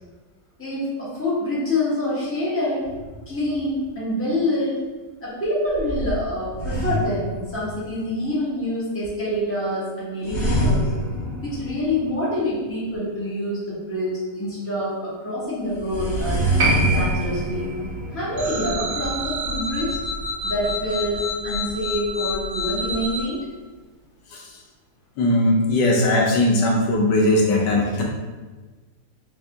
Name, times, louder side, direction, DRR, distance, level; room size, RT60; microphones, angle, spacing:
voice 1, 0.6-2.9 3.3-4.8 5.2-10.9 11.4-16.4 16.8-17.7 18.1-20.0 20.4-23.4, left 1 dB, 10° left, -9 dB, 1.2 m, -26 dB
sound 1, 2.8-3.8 5.7-8.0 10.2-12.4 15.7-20.4, equal, 65° left, 1.3 m, -27 dB
Piano, 16.6-23.5 23.8-23.9, right 2 dB, 60° right, 1.1 m, -31 dB
sound 2, 18.4-23.2, left 1 dB, 85° right, 1.5 m, -29 dB
voice 2, 25.2-28.0, left 1 dB, 85° left, -1 dB, 1.4 m, -19 dB
4.1 x 2.7 x 3.5 m, 1.3 s
omnidirectional pair, 1.8 m